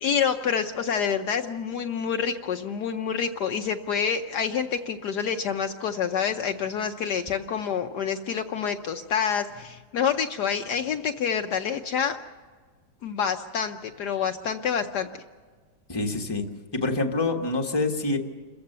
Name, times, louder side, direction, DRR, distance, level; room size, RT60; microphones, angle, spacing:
voice 1, 0.0-12.2 13.0-15.1, left 7 dB, 65° left, 6 dB, 1.2 m, -27 dB
voice 2, 15.9-16.4 16.7-18.2, left 3 dB, 15° left, 2 dB, 1.4 m, -26 dB
28.0 x 15.0 x 6.7 m, 1.5 s
omnidirectional pair, 2.1 m